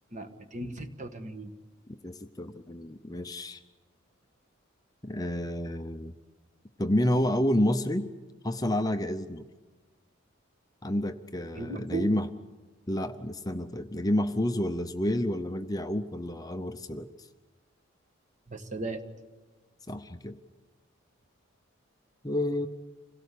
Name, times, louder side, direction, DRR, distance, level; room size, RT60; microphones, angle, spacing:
voice 1, 0.1-1.5 11.5-12.1 18.5-19.0, right 3 dB, 35° right, 8 dB, 1.5 m, -36 dB
voice 2, 1.9-3.6 5.0-6.1 6.8-8.1 8.4-9.5 10.8-12.3 12.9-17.1 19.9-20.4 22.2-22.7, left 1 dB, 20° left, 8 dB, 0.7 m, -29 dB
26.5 x 17.5 x 8.3 m, 1.3 s
head